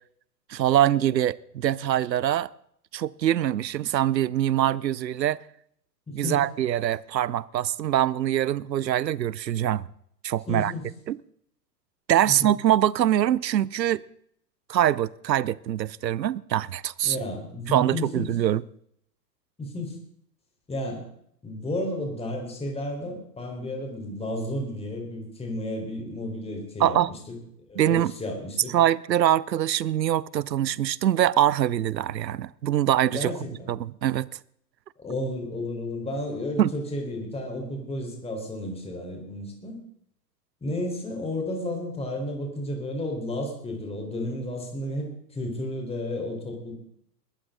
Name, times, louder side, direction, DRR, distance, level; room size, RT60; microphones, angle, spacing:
voice 1, 0.5-2.5 2.9-5.4 6.1-9.9 10.2-10.7 11.1-11.2 12.1-14.0 14.7-17.2 17.7-18.6 26.8-27.1 27.8-28.1 28.7-33.3 33.7-34.3 36.6-36.7, right 11 dB, 80° right, 0.7 m, -23 dB
voice 2, 6.1-6.4 10.5-10.8 12.3-12.5 17.0-18.3 19.6-20.0 20.7-21.0 21.4-27.4 27.7-28.8 33.1-33.7 35.0-39.8 40.6-46.8, left 1 dB, 10° left, 4.1 m, -32 dB
20.5 x 12.5 x 3.8 m
hypercardioid pair, 110°, 50 cm